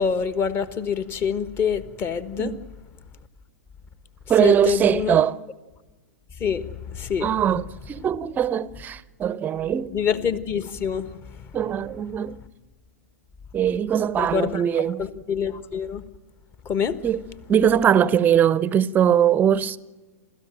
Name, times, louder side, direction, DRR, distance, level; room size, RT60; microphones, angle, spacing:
voice 1, 0.0-2.5 4.4-5.2 6.4-7.3 9.9-11.5 14.2-14.6 15.0-16.0 16.6-17.0, left 7 dB, 25° left, 1.4 m, -26 dB
voice 2, 4.3-5.4 7.2-9.9 11.5-12.4 13.5-15.0 17.0-17.2 17.5-19.8, right 9 dB, 20° right, 0.7 m, -21 dB
28.5 x 14.0 x 9.0 m
figure-of-eight pair, 105°, 8 cm